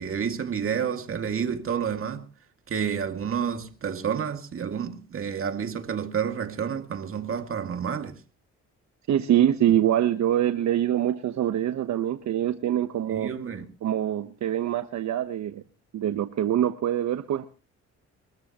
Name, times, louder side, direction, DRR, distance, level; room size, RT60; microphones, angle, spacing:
voice 1, 0.0-2.3 2.7-8.2 9.7-9.8 13.1-13.7, right 7 dB, 45° right, 2.2 m, -30 dB
voice 2, 9.1-13.3 13.8-15.6 15.9-17.5, right 11 dB, 65° right, 1.1 m, -24 dB
23.0 x 14.0 x 3.0 m
cardioid pair, 90°, 30 cm